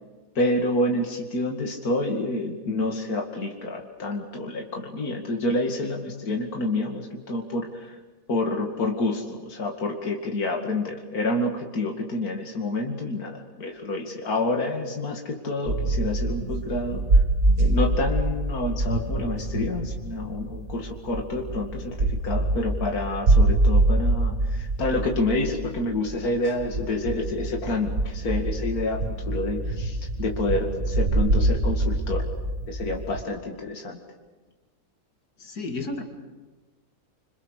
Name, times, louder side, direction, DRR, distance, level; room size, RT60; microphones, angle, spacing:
voice 1, 0.3-8.0 8.3-17.2 17.6-32.2 32.7-34.0, left 2 dB, 75° left, 1 dB, 2.8 m, -28 dB
sound 1, 15.7-33.2, right 2 dB, 50° right, 1.9 m, -25 dB
voice 2, 35.4-36.0, left 2 dB, 90° left, 4 dB, 3.1 m, -32 dB
27.5 x 26.0 x 6.6 m, 1.3 s
omnidirectional pair, 1.6 m